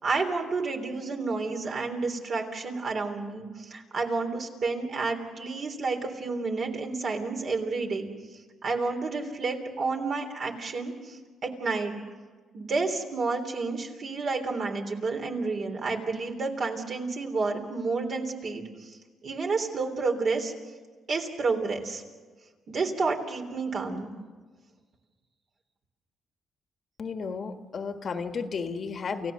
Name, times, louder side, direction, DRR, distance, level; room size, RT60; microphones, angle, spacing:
voice 1, 0.0-8.1 8.6-12.0 12.5-19.0 19.2-20.5 21.1-22.0 22.7-24.1, right 3 dB, 50° right, 3 dB, 3.3 m, -30 dB
voice 2, 27.0-29.3, left 5 dB, 50° left, 7 dB, 1.6 m, -33 dB
29.0 x 16.0 x 6.7 m, 1.4 s
cardioid pair, 90°, 0 cm